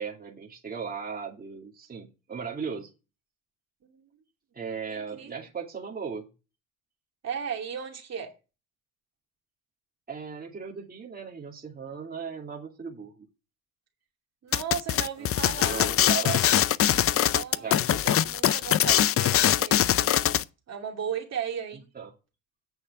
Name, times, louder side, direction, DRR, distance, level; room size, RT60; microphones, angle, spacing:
voice 1, 0.0-2.9 4.5-6.3 10.1-13.3 15.2-15.3 15.7-16.4 17.5-17.9 21.9-22.1, right 6 dB, 25° right, 2.4 m, -37 dB
voice 2, 4.9-5.4 7.2-8.3 14.4-15.9 17.2-20.2 20.7-21.9, right 7 dB, 45° right, 2.8 m, -36 dB
sound 1, 14.5-20.4, left 11 dB, 40° left, 0.5 m, -23 dB
8.6 x 6.4 x 6.8 m
supercardioid pair, 75°, 36 cm